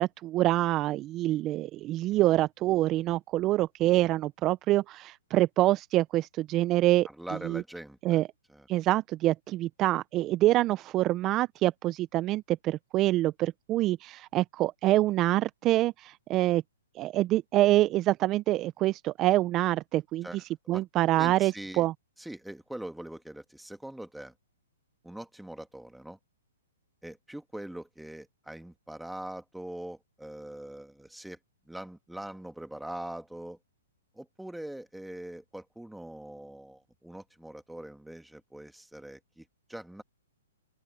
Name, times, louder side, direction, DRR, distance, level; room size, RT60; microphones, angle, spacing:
voice 1, 0.0-7.1 7.4-7.6 8.0-8.2 8.7-16.6 17.0-20.3 20.7-21.9, right 16 dB, 30° right, 0.8 m, -26 dB
voice 2, 7.0-8.2 8.5-8.7 20.2-20.4 20.6-20.8 21.2-21.9 22.2-24.3 25.0-26.2 27.0-31.4 31.7-33.6 34.2-40.0, right 1 dB, ahead, 2.4 m, -42 dB
open air
hypercardioid pair, 130°, 0 cm